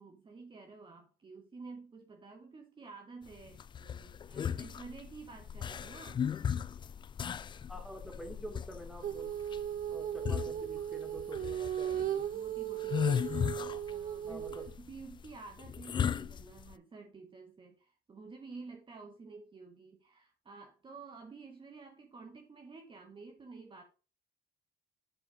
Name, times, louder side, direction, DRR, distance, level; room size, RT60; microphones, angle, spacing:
voice 1, 0.0-6.2 11.9-13.2 13.9-23.8, right 4 dB, 30° right, 3 dB, 1.3 m, -51 dB
sound 1, 3.3-16.7, left 8 dB, 30° left, 0.3 m, -36 dB
voice 2, 7.7-9.3 9.9-12.3 13.0-13.2 14.2-14.7, right 1 dB, ahead, 3 dB, 2.6 m, -47 dB
Female singing, 9.0-14.7, right 10 dB, 55° right, 0.9 m, -37 dB
7.9 x 4.9 x 5.0 m, 0.35 s
cardioid pair, 110°, 17 cm